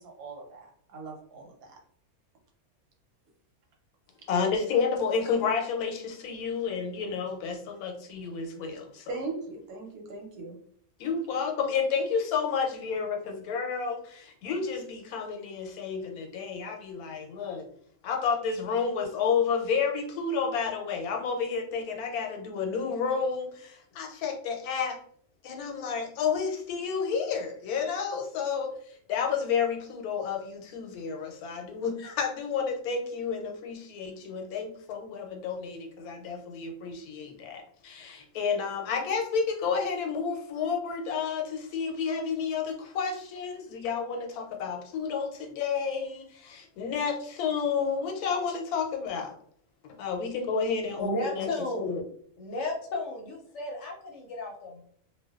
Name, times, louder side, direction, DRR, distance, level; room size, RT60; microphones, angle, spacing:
voice 1, 0.0-1.8 9.1-10.6, right 3 dB, 85° right, 1 dB, 1.1 m, -39 dB
voice 2, 4.3-9.1 11.0-17.6 18.0-25.0 25.4-49.4 50.0-51.5 51.7-52.0, left 6 dB, 90° left, 2 dB, 1.1 m, -30 dB
voice 3, 51.0-52.0 52.4-54.8, left 1 dB, 65° left, 1 dB, 0.8 m, -34 dB
2.5 x 2.2 x 2.3 m, 0.62 s
omnidirectional pair, 1.5 m